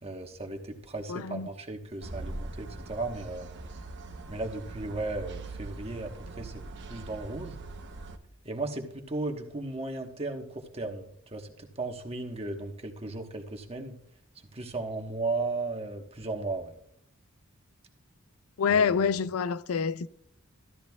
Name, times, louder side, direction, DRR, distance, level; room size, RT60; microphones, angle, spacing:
voice 1, 0.0-3.5 4.3-6.6 6.9-7.6 8.4-14.0 14.5-16.7 18.7-19.0, right 2 dB, 30° right, 1.2 m, -35 dB
voice 2, 1.1-1.5 18.6-20.1, left 6 dB, 85° left, 0.4 m, -26 dB
sound 1, 2.0-8.2, right 2 dB, 55° right, 0.9 m, -42 dB
14.0 x 12.5 x 2.3 m
head